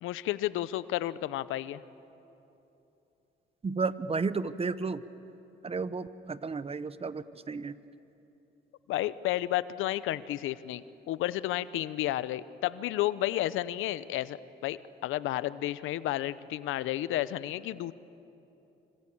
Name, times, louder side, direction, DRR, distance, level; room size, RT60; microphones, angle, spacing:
voice 1, 0.0-1.8 8.9-17.9, left 14 dB, 90° left, 16 dB, 0.7 m, -32 dB
voice 2, 3.6-5.0 5.6-7.7, right 4 dB, 30° right, 14 dB, 1.0 m, -32 dB
25.5 x 25.0 x 8.6 m, 3.0 s
cardioid pair, 90°, 20 cm